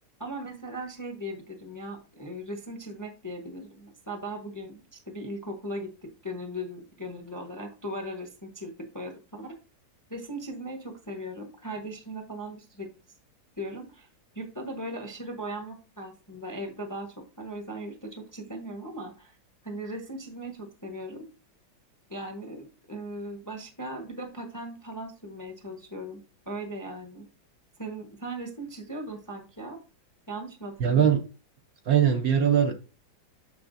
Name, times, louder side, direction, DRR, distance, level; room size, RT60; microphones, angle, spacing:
voice 1, 0.2-9.5 10.1-12.9 13.6-14.1 14.3-17.1 17.4-19.4 19.6-21.3 22.1-26.2 26.5-27.3 27.8-29.8 30.3-31.1, right 1 dB, 15° left, 0.8 m, -38 dB
voice 2, 30.8-31.2 31.8-32.8, right 8 dB, 60° right, 1.0 m, -21 dB
7.0 x 6.9 x 2.6 m
omnidirectional pair, 2.0 m